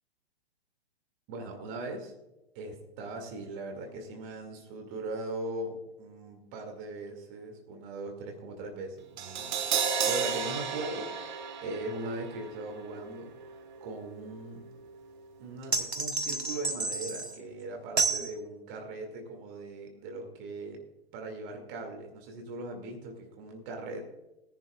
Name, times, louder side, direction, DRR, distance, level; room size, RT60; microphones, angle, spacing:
voice 1, 1.3-2.1 2.5-11.1 11.6-13.3 13.8-14.6 15.4-20.8 21.1-24.0, right 2 dB, 30° right, 3 dB, 2.2 m, -39 dB
Crash cymbal, 9.2-15.3 15.6-15.7, right 6 dB, 45° right, 1.4 m, -34 dB
sound 1, 15.7-17.4 18.0-18.3, right 3 dB, 80° right, 1.1 m, -30 dB
18.5 x 10.5 x 2.3 m, 0.96 s
figure-of-eight pair, 115°, 32 cm